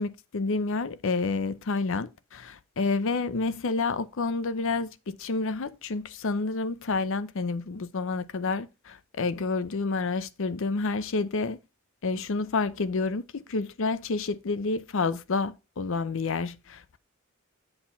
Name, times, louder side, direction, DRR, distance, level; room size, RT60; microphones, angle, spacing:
voice 1, 0.0-11.6 12.0-17.0, left 3 dB, 65° left, 0.6 m, -29 dB
7.7 x 4.3 x 5.6 m
head